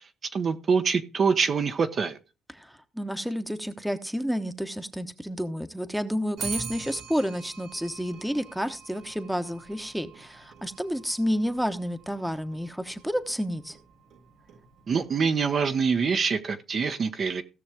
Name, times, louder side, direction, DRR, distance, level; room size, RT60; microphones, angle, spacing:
voice 1, 0.3-2.2 14.9-17.4, right 5 dB, 45° right, 0.9 m, -25 dB
voice 2, 2.5-13.8, equal, ahead, 1.0 m, -30 dB
Clock, 6.4-15.7, right 5 dB, 70° right, 1.5 m, -43 dB
16.5 x 6.3 x 3.5 m
supercardioid pair, 75°, 0 cm